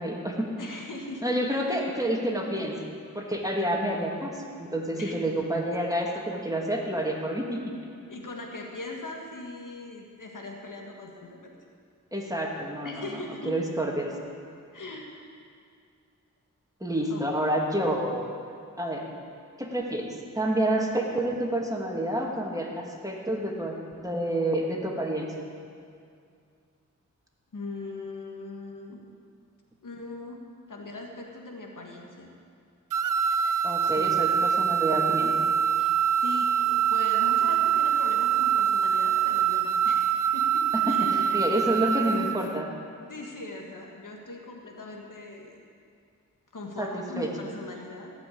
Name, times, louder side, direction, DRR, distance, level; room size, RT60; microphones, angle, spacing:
voice 1, 0.0-0.5 1.2-2.8 3.1-7.6 12.1-13.2 13.5-14.1 16.8-18.4 18.8-19.1 19.6-25.3 33.6-35.4 40.9-42.7 46.8-47.3, right 1 dB, 10° right, -1 dB, 2.4 m, -29 dB
voice 2, 0.6-1.2 5.0-5.1 8.1-11.5 12.8-13.5 14.7-15.1 17.1-17.2 27.5-29.0 29.8-30.4 30.7-32.3 33.8-34.1 35.8-35.9 36.2-42.1 43.0-45.5 46.5-48.1, left 2 dB, 70° left, 0 dB, 1.8 m, -40 dB
sound 1, 32.9-42.5, right 8 dB, 70° right, 0.6 m, -24 dB
16.5 x 5.9 x 8.6 m, 2.3 s
cardioid pair, 45°, 32 cm